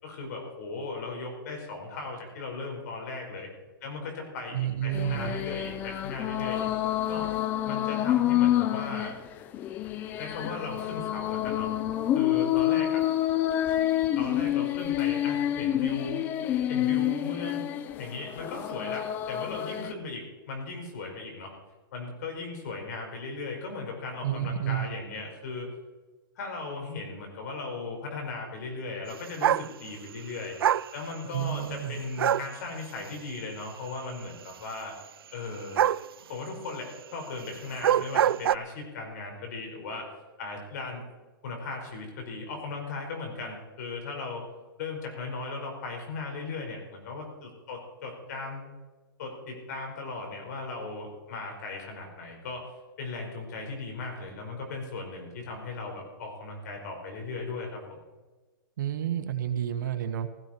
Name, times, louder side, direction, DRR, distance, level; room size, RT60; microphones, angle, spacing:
voice 1, 0.0-3.5 3.8-6.7 7.1-7.3 7.7-9.2 10.2-11.7 12.1-13.0 14.2-16.3 16.7-17.6 18.0-21.5 21.9-25.7 26.4-30.6 30.9-34.9 35.3-35.8 36.3-40.1 40.4-41.0 41.4-44.5 44.8-48.7 49.2-52.7 53.0-58.0, left 3 dB, 50° left, 2 dB, 5.2 m, -37 dB
voice 2, 4.5-5.4 24.2-24.9 31.2-32.0 58.8-60.3, right 11 dB, 55° right, 9 dB, 1.3 m, -30 dB
sound 1, 4.9-19.9, left 12 dB, 15° left, 0.4 m, -28 dB
sound 2, 29.4-29.7 30.6-30.9 32.2-32.5 35.8-36.1 37.7-38.6, right 10 dB, 80° right, 0.4 m, -23 dB
16.5 x 15.0 x 4.5 m, 1.2 s
hypercardioid pair, 160°, 12 cm